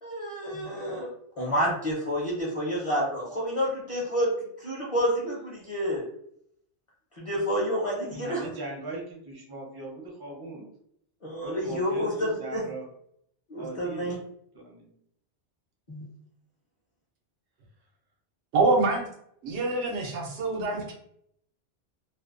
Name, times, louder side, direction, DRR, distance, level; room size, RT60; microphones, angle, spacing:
voice 1, 0.0-1.1 1.4-4.3 4.6-6.0 7.2-8.5 11.2-12.6 13.5-14.2 15.9-16.0, equal, 40° left, -4 dB, 0.6 m, -29 dB
voice 2, 8.0-10.7 11.4-12.9 13.6-14.2 14.5-14.9, right 3 dB, 30° right, -1 dB, 0.5 m, -39 dB
voice 3, 18.5-19.0 19.4-20.9, right 3 dB, 90° right, 0 dB, 0.9 m, -25 dB
2.5 x 2.1 x 2.4 m, 0.69 s
omnidirectional pair, 1.1 m